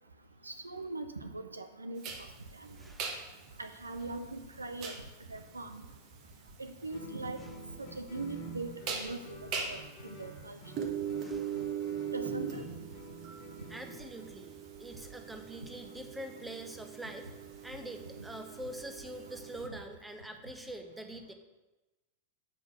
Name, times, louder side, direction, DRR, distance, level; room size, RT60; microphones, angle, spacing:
voice 1, 0.4-2.0 2.6-2.7 3.6-5.0 5.3-5.8 6.6-7.4 7.8-10.8 12.1-12.6 18.2-18.3, right 2 dB, 80° right, 8 dB, 0.5 m, -41 dB
sound 1, 2.0-19.7, right 7 dB, 40° right, 1.0 m, -41 dB
voice 2, 2.8-3.2 11.2-11.7 13.7-17.3 17.6-21.3, right 1 dB, 5° right, 5 dB, 0.9 m, -45 dB
Guitar, 6.9-14.4, right 1 dB, 40° left, 1.7 m, -50 dB
8.0 x 5.2 x 6.1 m, 1.1 s
figure-of-eight pair, 90°, 0 cm